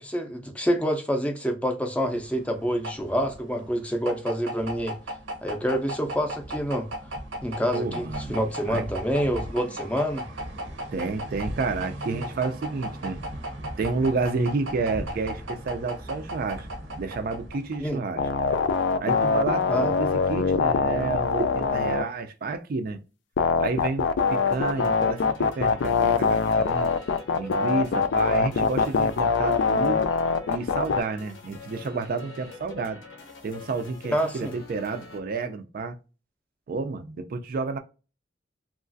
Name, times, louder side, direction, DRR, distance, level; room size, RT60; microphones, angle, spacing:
voice 1, 0.0-4.9 5.4-6.9 7.4-10.2 17.8-18.0 19.7-19.9 34.1-34.5, equal, 5° left, 0.4 m, -27 dB
sound 1, 2.1-18.1, equal, 90° right, 0.8 m, -36 dB
voice 2, 7.7-8.4 8.7-8.8 10.9-13.2 13.8-16.7 17.0-18.2 19.0-23.0 23.6-26.9 27.3-30.0 30.5-33.0 33.4-36.0 36.7-37.8, right 3 dB, 50° right, 0.3 m, -30 dB
sound 2, 18.2-22.0 23.4-31.0, left 5 dB, 70° left, 0.3 m, -23 dB
sound 3, 24.5-35.2, left 3 dB, 90° left, 0.7 m, -45 dB
3.0 x 2.4 x 2.5 m
head